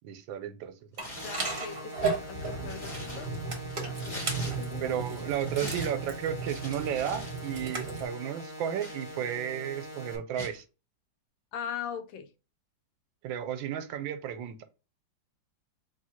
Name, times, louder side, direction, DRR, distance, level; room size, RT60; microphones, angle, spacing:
voice 1, 0.0-0.7 4.8-10.6 13.2-14.6, right 9 dB, 90° right, 1.4 m, -33 dB
Tearing, 0.9-1.8 2.3-4.9 5.2-7.4 7.6-7.9 8.4-9.5 10.3-10.6, equal, 20° left, 1.0 m, -43 dB
sound 1, 1.0-8.1, right 4 dB, 35° right, 1.0 m, -35 dB
voice 2, 1.2-3.3 3.8-5.0 11.5-12.3, left 8 dB, 90° left, 1.4 m, -40 dB
sound 2, 1.2-10.2, left 1 dB, 15° right, 0.7 m, -43 dB
3.7 x 2.7 x 4.2 m
omnidirectional pair, 2.1 m